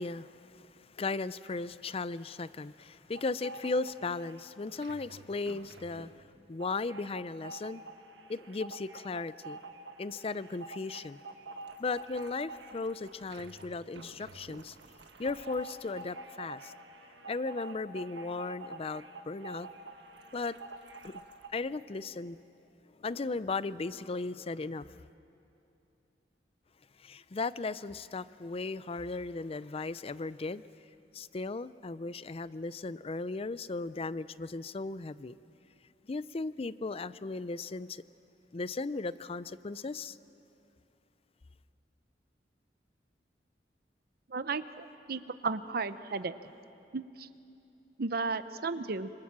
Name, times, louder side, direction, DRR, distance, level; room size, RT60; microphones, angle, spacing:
voice 1, 0.0-6.1 6.5-7.8 8.3-9.6 10.0-11.2 11.8-14.8 15.2-16.7 17.3-19.7 20.3-20.6 21.0-21.1 21.5-22.4 23.0-25.0 27.0-30.6 31.1-35.3 36.1-38.0 38.5-40.2, left 3 dB, 35° left, 16 dB, 0.5 m, -36 dB
sound 1, 3.2-4.4 4.7-21.5, right 3 dB, 85° right, 1.5 m, -47 dB
voice 2, 44.3-46.4 46.9-47.3 48.0-49.1, right 4 dB, 60° right, 12 dB, 0.7 m, -34 dB
26.0 x 25.5 x 7.4 m, 2.8 s
head